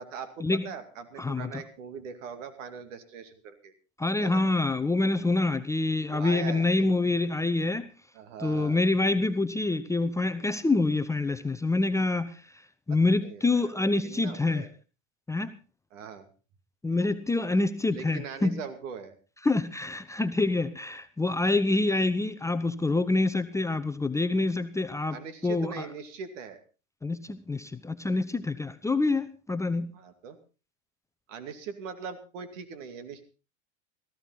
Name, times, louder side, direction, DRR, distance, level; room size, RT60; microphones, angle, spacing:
voice 1, 0.0-3.7 4.2-4.4 6.1-6.9 8.1-8.9 13.1-14.7 15.9-16.3 17.9-19.1 25.1-26.6 29.9-30.4 31.3-33.2, right 6 dB, 70° right, 10 dB, 2.5 m, -41 dB
voice 2, 1.2-1.6 4.0-7.9 8.4-12.4 12.9-14.6 15.3-15.5 16.8-18.6 19.4-25.2 25.4-25.8 27.0-29.9, left 2 dB, 10° left, 9 dB, 0.8 m, -26 dB
17.5 x 14.5 x 4.0 m, 0.34 s
hypercardioid pair, 105°, 39 cm